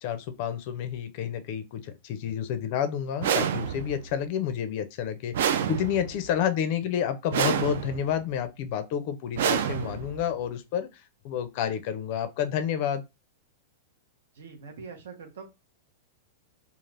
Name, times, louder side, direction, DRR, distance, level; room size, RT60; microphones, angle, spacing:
voice 1, 0.0-5.3 5.7-10.9 11.2-13.0, left 9 dB, 40° left, 0.4 m, -29 dB
sound 1, 3.2-4.1 5.3-6.3 7.3-8.1 9.3-10.3, right 8 dB, 65° right, 0.3 m, -28 dB
voice 2, 14.3-15.4, right 5 dB, 80° right, 0.9 m, -43 dB
2.4 x 2.4 x 3.2 m
supercardioid pair, 170°, 0 cm